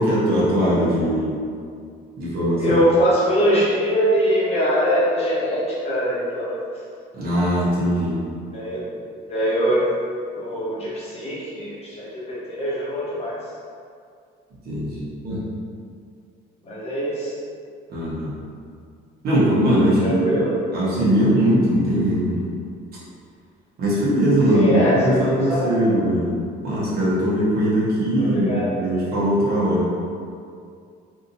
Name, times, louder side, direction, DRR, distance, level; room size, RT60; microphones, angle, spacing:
voice 1, 0.0-1.4 2.2-2.8 7.1-8.2 14.6-15.4 17.9-18.3 19.2-20.4 20.7-22.5 23.8-26.3 26.6-29.9, equal, 55° right, -8 dB, 1.2 m, -20 dB
voice 2, 2.6-6.6 8.5-8.9 9.3-9.8 10.3-13.4 16.6-17.3 20.0-20.6 24.5-24.9 25.2-25.9 28.2-28.9, equal, 35° left, -7 dB, 0.9 m, -22 dB
3.5 x 2.7 x 2.6 m, 2.3 s
cardioid pair, 120°, 18 cm